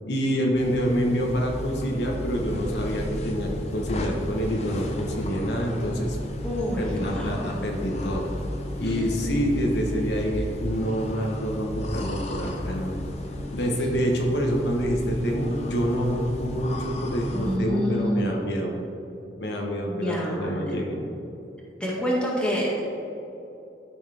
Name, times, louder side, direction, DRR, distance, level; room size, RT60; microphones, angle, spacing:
voice 1, 0.1-6.2 6.8-8.3 8.8-12.9 13.5-18.7 19.4-21.1, equal, 75° left, 0 dB, 1.1 m, -27 dB
sound 1, 0.5-17.6, left 1 dB, 35° left, 0.7 m, -33 dB
voice 2, 6.4-7.4 8.8-9.7 17.3-18.3 19.9-20.6 21.8-22.8, equal, 5° left, -6 dB, 1.9 m, -28 dB
12.5 x 6.4 x 3.4 m, 2.9 s
head